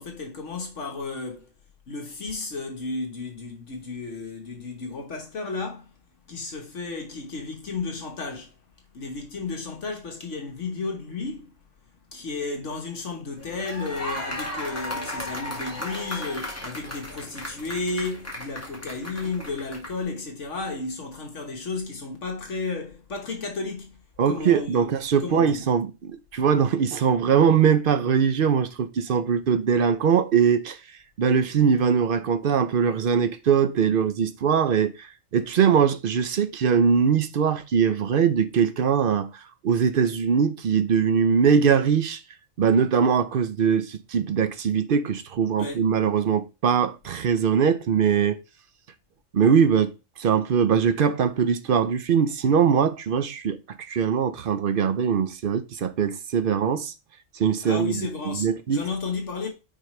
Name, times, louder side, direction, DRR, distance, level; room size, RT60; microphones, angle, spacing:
voice 1, 0.0-1.5 1.9-5.9 6.3-8.6 8.9-11.5 12.1-24.0 24.2-24.9 25.2-25.7 45.6-45.8 57.6-59.5, left 3 dB, 65° left, 1.5 m, -33 dB
sound 1, 13.4-20.0, left 1 dB, 10° left, 1.6 m, -35 dB
voice 2, 24.2-30.8 31.2-35.1 35.3-39.3 39.6-42.2 42.6-48.4 49.3-49.9 50.2-56.9 57.4-58.8, right 7 dB, 55° right, 0.7 m, -22 dB
9.1 x 4.2 x 3.1 m
omnidirectional pair, 1.4 m